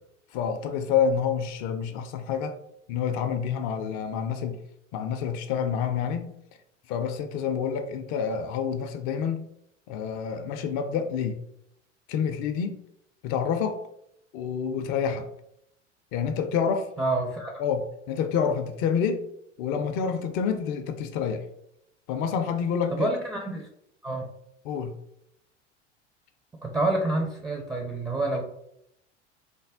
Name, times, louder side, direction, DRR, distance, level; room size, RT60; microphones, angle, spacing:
voice 1, 0.3-2.6 2.9-4.6 4.9-6.3 6.9-9.5 9.9-11.4 12.1-12.8 13.2-13.8 14.3-15.3 16.1-16.9 17.6-19.2 19.6-21.5 22.1-23.1 24.7-25.0, left 7 dB, 45° left, 0.5 m, -28 dB
voice 2, 17.0-17.6 22.9-23.7 24.0-24.3 26.6-28.4, right 2 dB, 10° right, 0.5 m, -28 dB
3.3 x 2.1 x 3.4 m
hypercardioid pair, 80°, 36 cm